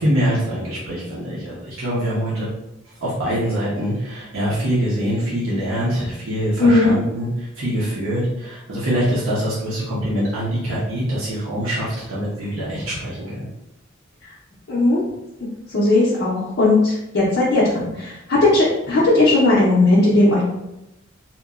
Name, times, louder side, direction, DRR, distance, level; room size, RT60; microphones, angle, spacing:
voice 1, 0.0-2.5 3.0-13.5, equal, 90° right, -7 dB, 0.7 m, -24 dB
voice 2, 6.6-6.9 14.7-15.0 15.7-20.4, left 2 dB, 60° left, -7 dB, 0.6 m, -17 dB
2.9 x 2.2 x 2.3 m, 0.91 s
head